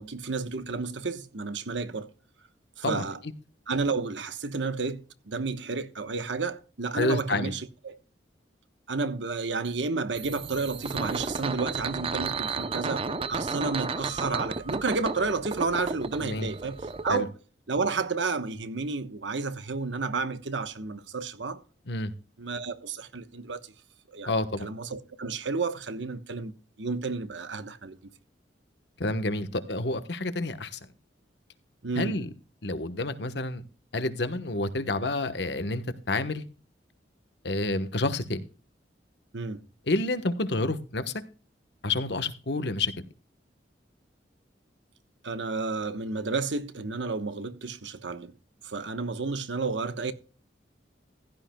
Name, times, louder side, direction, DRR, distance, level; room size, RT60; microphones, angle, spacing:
voice 1, 0.0-2.1 2.8-3.2 3.7-8.0 8.9-16.8 17.0-17.3 17.7-21.6 22.4-23.7 24.1-24.3 24.6-26.5 26.8-28.0 31.8-32.2 39.3-39.6 45.2-48.3 48.6-50.1, right 4 dB, 80° right, 1.2 m, -31 dB
voice 2, 7.0-7.5 16.2-16.5 17.1-17.3 21.9-22.1 24.3-24.7 29.0-30.8 32.0-32.3 32.6-33.6 33.9-36.4 37.4-38.4 39.9-41.1 41.8-42.9, left 2 dB, 65° left, 1.2 m, -29 dB
sound 1, 10.2-17.1, right 4 dB, 30° right, 0.7 m, -33 dB
15.5 x 12.0 x 2.3 m
head